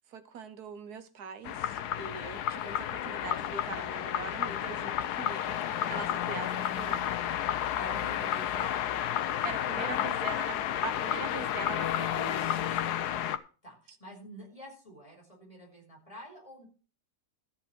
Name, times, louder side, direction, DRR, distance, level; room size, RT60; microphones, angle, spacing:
voice 1, 0.1-5.6 5.9-7.1 9.4-12.7, right 5 dB, 70° right, 1.5 m, -42 dB
sound 1, 1.4-13.4, left 10 dB, 80° left, 1.2 m, -31 dB
voice 2, 7.8-8.9 9.6-10.0 13.1-13.2 13.6-16.7, right 1 dB, 20° left, 5.2 m, -48 dB
13.5 x 7.5 x 4.5 m
omnidirectional pair, 1.7 m